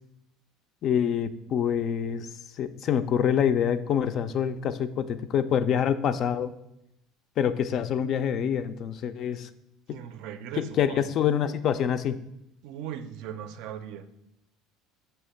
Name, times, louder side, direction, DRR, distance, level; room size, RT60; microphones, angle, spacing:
voice 1, 0.8-2.3 2.5-6.5 7.4-9.5 9.9-10.0 10.6-12.2, left 8 dB, 45° left, 12 dB, 0.3 m, -26 dB
voice 2, 9.9-11.1 12.6-14.1, right 9 dB, 65° right, 11 dB, 0.4 m, -38 dB
6.3 x 2.9 x 5.6 m, 0.81 s
cardioid pair, 135°, 0 cm